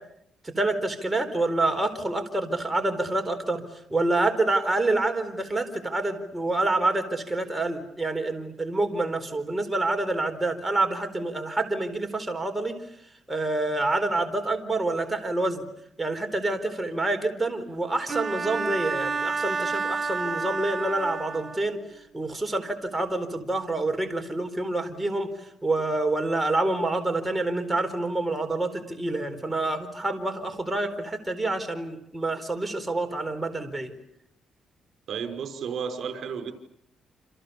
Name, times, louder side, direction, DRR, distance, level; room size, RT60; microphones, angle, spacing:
voice 1, 0.4-3.6 3.9-12.8 13.3-15.6 16.0-21.8 22.1-25.3 25.6-33.9, right 2 dB, 10° right, 5 dB, 4.2 m, -27 dB
Bowed string instrument, 18.1-21.8, right 4 dB, 35° right, 1.5 m, -30 dB
voice 2, 35.1-36.5, right 6 dB, 60° right, 5 dB, 5.3 m, -32 dB
29.0 x 27.0 x 7.0 m, 0.74 s
cardioid pair, 90°, 0 cm